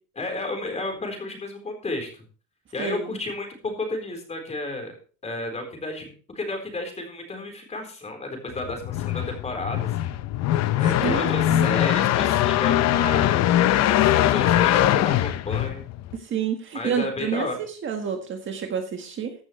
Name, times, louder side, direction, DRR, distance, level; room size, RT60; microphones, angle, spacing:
voice 1, 0.1-2.1 2.7-5.0 5.2-10.1 10.8-15.8 16.7-17.6, left 2 dB, 20° left, 3 dB, 4.1 m, -32 dB
voice 2, 2.8-3.2 10.5-11.7 16.1-19.3, right 7 dB, 35° right, 4 dB, 1.6 m, -30 dB
sound 1, 8.6-16.2, left 13 dB, 50° left, 0.8 m, -21 dB
15.0 x 12.0 x 3.2 m, 0.38 s
cardioid pair, 170°, 35 cm